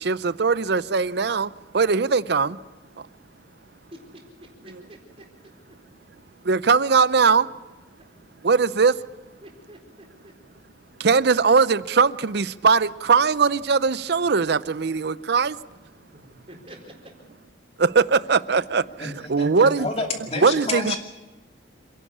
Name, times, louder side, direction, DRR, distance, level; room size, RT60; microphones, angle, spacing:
voice 1, 0.0-2.6 4.7-4.8 6.4-7.5 8.4-9.0 11.0-15.6 17.8-19.9 20.4-21.0, right 5 dB, 60° right, 0.6 m, -20 dB
voice 2, 3.9-4.2 4.6-5.0 9.4-10.3 16.1-16.9, equal, 30° right, 4.3 m, -46 dB
voice 3, 19.0-21.0, left 3 dB, 30° left, 2.6 m, -30 dB
28.0 x 11.0 x 8.5 m
head